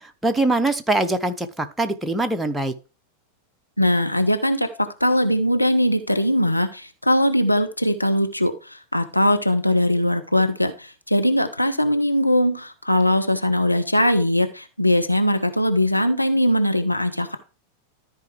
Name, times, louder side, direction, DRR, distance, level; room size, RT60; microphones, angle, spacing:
voice 1, 0.0-2.7, right 2 dB, 5° right, 7 dB, 0.9 m, -23 dB
voice 2, 3.8-4.7 5.0-17.4, left 1 dB, 90° left, 7 dB, 0.7 m, -20 dB
13.5 x 4.8 x 3.3 m, 0.33 s
figure-of-eight pair, 90°, 0 cm